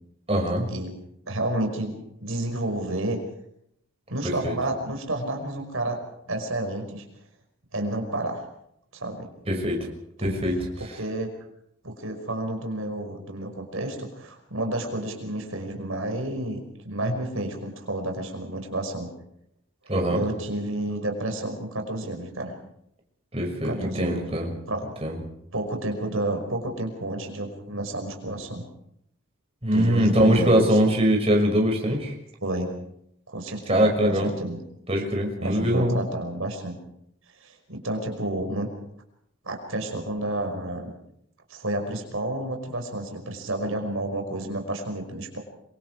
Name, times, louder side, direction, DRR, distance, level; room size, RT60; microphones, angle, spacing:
voice 1, 0.3-0.7 4.4-4.5 9.5-9.9 10.2-10.6 19.9-20.2 23.3-24.5 25.0-25.2 29.6-32.1 33.7-34.3 34.9-35.9, equal, 25° right, 1 dB, 6.1 m, -22 dB
voice 2, 1.3-1.9 2.2-3.2 4.1-6.0 6.3-7.0 7.7-8.5 8.9-9.3 10.2-10.4 10.8-11.3 11.8-19.1 20.1-22.5 23.6-24.2 24.7-24.9 25.5-28.6 29.7-30.8 32.4-32.7 33.3-34.6 35.4-36.8 37.4-38.7 39.4-40.9 41.5-45.4, right 1 dB, 70° right, 3 dB, 5.4 m, -30 dB
27.0 x 25.0 x 4.8 m, 0.74 s
head